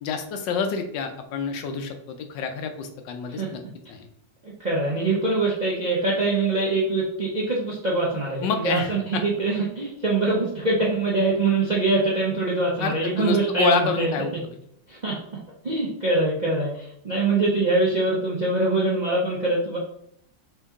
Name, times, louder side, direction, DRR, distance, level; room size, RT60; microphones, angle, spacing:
voice 1, 0.0-3.6 3.9-4.0 8.4-9.2 12.8-14.3, left 5 dB, 75° left, 6 dB, 1.3 m, -27 dB
voice 2, 4.4-14.1 14.9-15.2 15.6-19.8, right 2 dB, 70° right, -4 dB, 0.4 m, -23 dB
4.5 x 2.9 x 3.5 m, 0.73 s
omnidirectional pair, 2.0 m